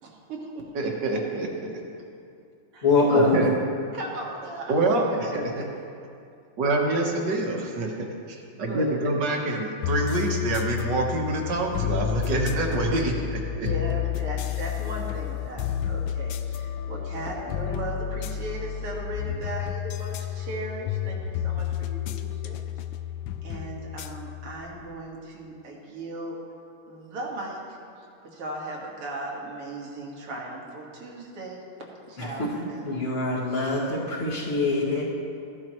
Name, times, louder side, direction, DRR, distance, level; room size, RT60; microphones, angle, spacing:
voice 1, 0.0-1.2 2.7-3.5 3.9-5.0 5.3-5.6 8.6-9.0 13.5-22.6 23.4-26.4 26.9-27.6 28.2-31.6 32.1-32.9, right 2 dB, 85° right, -2 dB, 2.5 m, -37 dB
voice 2, 0.7-1.7 3.3-3.5 4.7-5.5 6.6-13.7, right 2 dB, 55° right, 1 dB, 1.7 m, -26 dB
voice 3, 2.8-3.4 32.2-32.5 32.8-35.0, left 3 dB, 35° left, -11 dB, 2.2 m, -24 dB
sound 1, 9.8-25.1, left 10 dB, 75° left, 1.2 m, -31 dB
15.0 x 10.5 x 3.0 m, 2.5 s
omnidirectional pair, 2.4 m